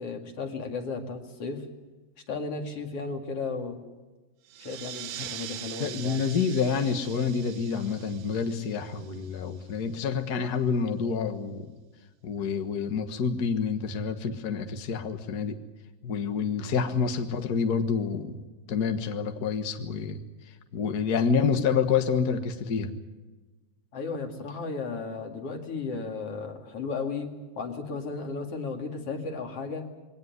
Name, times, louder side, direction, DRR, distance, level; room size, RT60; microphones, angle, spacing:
voice 1, 0.0-1.7 2.3-3.8 4.6-6.2 23.9-27.3 27.6-29.9, left 4 dB, 45° left, 4 dB, 2.9 m, -34 dB
sound 1, 4.5-9.7, right 11 dB, 75° right, 2.6 m, -42 dB
voice 2, 5.8-11.7 12.2-15.6 16.0-18.4 18.7-20.2 20.7-22.9, left 6 dB, 80° left, 7 dB, 0.8 m, -28 dB
22.0 x 18.0 x 9.5 m, 1.2 s
omnidirectional pair, 4.0 m